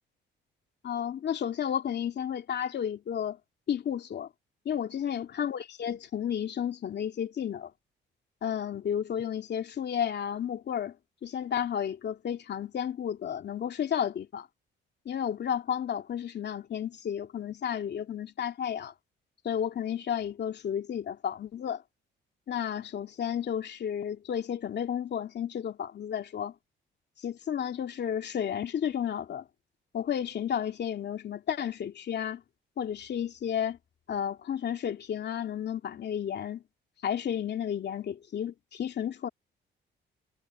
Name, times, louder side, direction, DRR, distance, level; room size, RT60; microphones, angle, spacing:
voice 1, 0.8-3.4 3.7-4.3 4.6-7.7 8.4-11.0 11.2-14.5 15.0-18.9 19.4-21.8 22.5-26.5 27.2-29.4 29.9-32.4 32.8-33.8 34.1-36.6 37.0-39.3, left 9 dB, 60° left, 2.7 m, -32 dB
cardioid pair, 90°, 20 cm